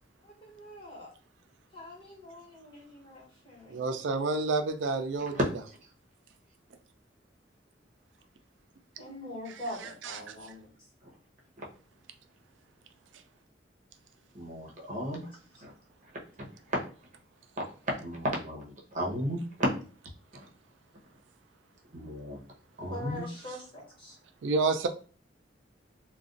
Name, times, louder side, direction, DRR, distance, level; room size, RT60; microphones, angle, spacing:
voice 1, 0.2-1.1 1.7-3.9 9.0-10.6 15.5-15.6 22.9-23.6, left 1 dB, 30° left, -5 dB, 1.4 m, -43 dB
voice 2, 3.7-5.4 9.5-10.2 23.0-23.1 24.4-24.9, right 3 dB, 85° right, 7 dB, 0.4 m, -30 dB
voice 3, 14.3-15.2 15.6-15.7 16.7-16.8 17.6-19.4 20.3-20.4 21.9-22.4 22.8-23.3, equal, 45° right, -2 dB, 0.9 m, -34 dB
2.5 x 2.3 x 3.7 m, 0.38 s
head